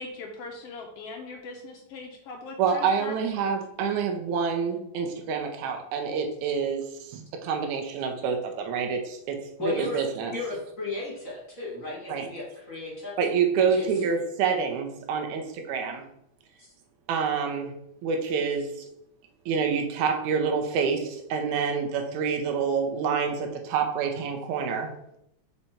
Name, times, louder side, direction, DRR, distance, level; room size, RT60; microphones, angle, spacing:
voice 1, 0.0-3.2, left 3 dB, 85° left, 1 dB, 1.3 m, -40 dB
voice 2, 2.6-10.3 12.1-12.3 13.2-16.1 17.1-17.7 18.0-18.7 19.5-24.9, right 6 dB, 75° right, 4 dB, 2.2 m, -27 dB
voice 3, 9.6-10.0 10.3-13.1 13.5-13.9 16.6-16.7, left 2 dB, 35° left, -6 dB, 1.6 m, -34 dB
5.1 x 4.4 x 4.2 m, 0.78 s
omnidirectional pair, 3.5 m